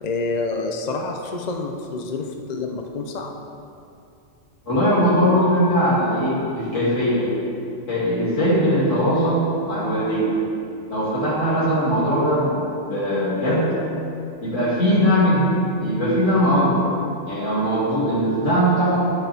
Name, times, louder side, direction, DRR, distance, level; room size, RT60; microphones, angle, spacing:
voice 1, 0.0-3.3, left 3 dB, 45° left, 3 dB, 0.6 m, -28 dB
voice 2, 4.6-7.3 7.9-10.3 10.9-13.7 14.4-15.5 15.8-16.8 17.2-19.0, equal, 80° left, -8 dB, 3.1 m, -20 dB
9.7 x 9.2 x 3.5 m, 2.6 s
omnidirectional pair, 1.3 m